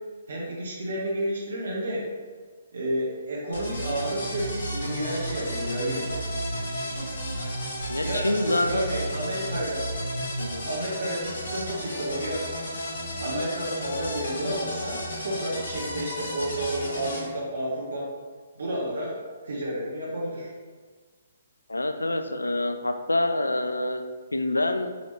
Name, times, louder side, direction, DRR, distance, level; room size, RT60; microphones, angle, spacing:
voice 1, 0.3-2.1 2.7-6.2 8.0-9.8 10.6-12.4 13.2-18.1 18.6-19.2 19.4-20.5, right 1 dB, 70° right, -3 dB, 0.9 m, -31 dB
sound 1, 3.5-17.2, equal, 70° left, 1.1 m, -33 dB
voice 2, 7.9-8.9 10.4-10.7 21.7-24.0 24.3-24.9, left 2 dB, 90° left, 7 dB, 0.3 m, -26 dB
3.8 x 3.0 x 3.1 m, 1.5 s
figure-of-eight pair, 130°, 0 cm